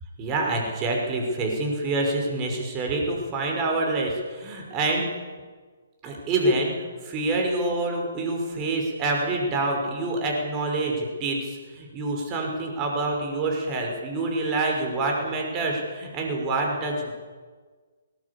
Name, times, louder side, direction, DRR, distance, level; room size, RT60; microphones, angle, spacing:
voice 1, 0.2-5.1 6.0-17.1, right 2 dB, 25° right, 1 dB, 5.8 m, -26 dB
20.0 x 19.5 x 8.6 m, 1.5 s
hypercardioid pair, 150°, 0 cm